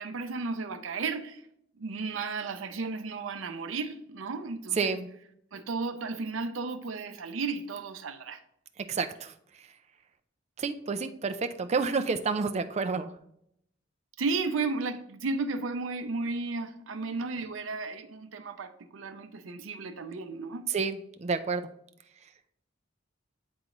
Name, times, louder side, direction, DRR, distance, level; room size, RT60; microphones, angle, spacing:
voice 1, 0.0-1.4 1.8-5.0 5.5-8.4 14.2-20.7, right 4 dB, 80° right, 0.6 m, -34 dB
voice 2, 4.8-5.1 8.9-9.3 10.6-13.1 20.7-21.6, right 4 dB, 35° right, 0.4 m, -29 dB
8.5 x 3.8 x 3.0 m
head